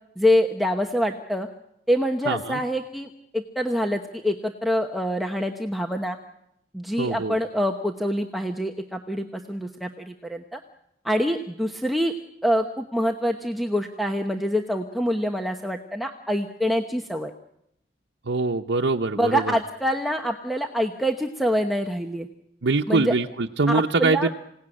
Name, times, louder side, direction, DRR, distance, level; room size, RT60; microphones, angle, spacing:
voice 1, 0.2-1.5 1.9-3.1 3.3-6.2 6.7-10.6 11.0-12.1 12.4-17.3 19.2-22.3 22.9-23.1 23.7-24.3, equal, ahead, 2 dB, 1.0 m, -25 dB
voice 2, 2.3-2.6 7.0-7.4 18.3-19.5 22.6-24.3, right 3 dB, 90° right, 1 dB, 0.9 m, -23 dB
27.0 x 18.0 x 9.9 m, 0.82 s
head